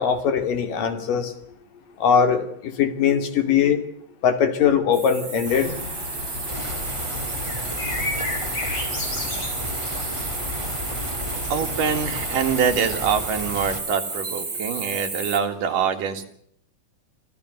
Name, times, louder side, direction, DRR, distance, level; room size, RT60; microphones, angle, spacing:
voice 1, 0.0-1.3 2.0-3.8 4.2-5.7, left 7 dB, 75° left, 8 dB, 4.1 m, -21 dB
sound 1, 4.9-15.4, right 4 dB, 25° right, 3.7 m, -32 dB
las ptaki szczawnica, 5.5-12.6, left 2 dB, 40° left, 5.8 m, -34 dB
sound 2, 6.5-13.8, left 1 dB, 10° left, 2.4 m, -34 dB
voice 2, 11.5-16.3, right 7 dB, 75° right, 6 dB, 3.7 m, -24 dB
26.5 x 16.0 x 8.0 m, 0.68 s
omnidirectional pair, 3.9 m